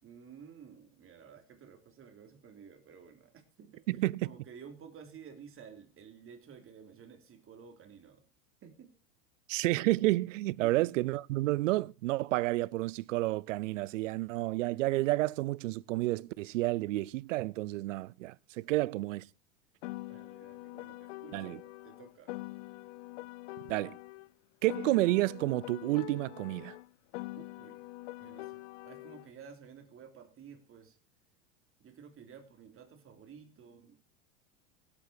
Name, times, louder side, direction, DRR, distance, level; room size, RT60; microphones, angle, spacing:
voice 1, 0.0-3.8 4.2-8.2 8.6-8.9 10.6-10.8 18.6-18.9 20.1-22.3 27.4-27.8 28.2-31.0 31.8-34.0, right 7 dB, 35° right, 3.5 m, -53 dB
voice 2, 3.9-4.3 9.5-19.3 21.3-21.6 23.7-24.0 24.6-26.7, right 18 dB, 70° right, 0.6 m, -30 dB
Piano, 19.8-24.3 24.7-29.3, left 21 dB, 65° left, 0.6 m, -44 dB
17.5 x 8.8 x 4.5 m
hypercardioid pair, 100°, 39 cm